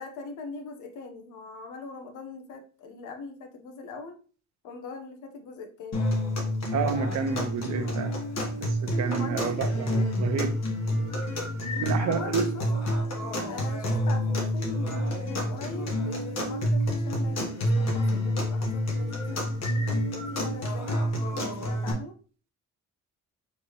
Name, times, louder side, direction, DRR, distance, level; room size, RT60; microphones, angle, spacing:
voice 1, 0.0-4.2 4.6-6.1 9.1-10.1 11.7-12.6 13.5-19.4 20.1-21.1 21.6-22.2, left 4 dB, 90° left, 5 dB, 0.9 m, -41 dB
sound 1, 5.9-21.9, equal, 60° left, 1.4 m, -28 dB
voice 2, 6.7-8.1 8.6-10.6 11.8-12.5, right 6 dB, 65° right, 7 dB, 0.9 m, -29 dB
4.4 x 3.3 x 2.9 m, 0.37 s
cardioid pair, 90°, 30 cm